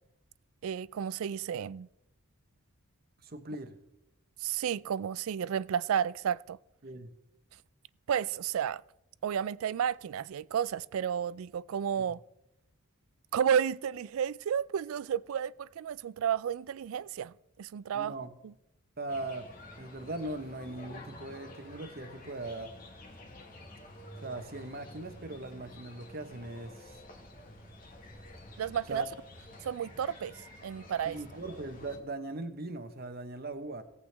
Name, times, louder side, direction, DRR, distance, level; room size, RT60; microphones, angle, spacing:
voice 1, 0.6-1.9 4.4-6.6 8.1-8.8 9.2-12.2 13.3-17.3 17.6-18.1 18.4-18.5 28.6-29.0 29.6-31.2, right 8 dB, 75° right, 0.3 m, -32 dB
voice 2, 3.2-3.8 6.8-7.1 17.9-18.3 19.0-22.7 24.2-27.0 28.9-29.1 31.0-33.8, right 2 dB, 45° right, 1.0 m, -40 dB
sound 1, 19.1-32.0, left 1 dB, 40° left, 1.4 m, -50 dB
17.5 x 8.2 x 3.4 m
head